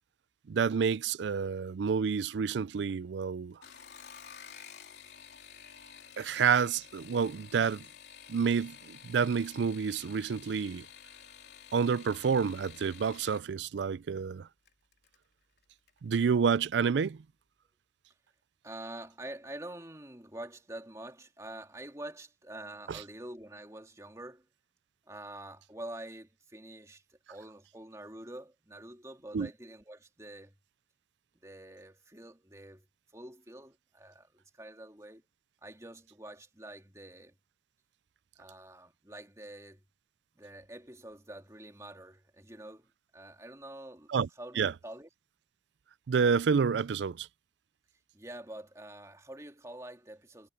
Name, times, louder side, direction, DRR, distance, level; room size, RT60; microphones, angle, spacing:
voice 1, 0.5-3.6 6.2-7.8 8.3-10.9 11.7-14.5 16.0-17.2 22.9-23.0 29.3-29.5 44.1-44.3 44.6-44.7 46.1-47.3, right 6 dB, 85° right, 0.4 m, -29 dB
sound 1, 3.5-13.5 14.7-15.2 15.6-16.0 16.3-16.4, left 8 dB, 70° left, 3.5 m, -51 dB
voice 2, 18.6-24.5 25.1-30.5 31.4-32.9 33.1-35.3 35.6-37.3 38.4-39.8 40.3-45.1 48.1-50.5, right 1 dB, 15° right, 2.7 m, -46 dB
head